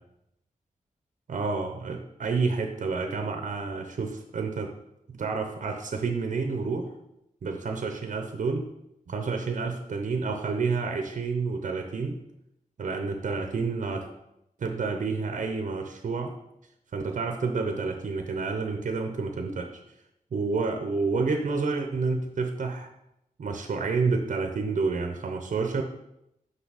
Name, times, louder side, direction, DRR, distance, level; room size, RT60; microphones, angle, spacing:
voice 1, 1.3-4.7 5.1-6.9 7.4-8.7 9.1-12.2 12.8-14.1 14.6-16.3 16.9-19.7 20.3-22.9 23.4-25.8, right 4 dB, 65° right, 5 dB, 0.7 m, -29 dB
5.9 x 5.5 x 4.1 m, 0.83 s
wide cardioid pair, 100°, 14 cm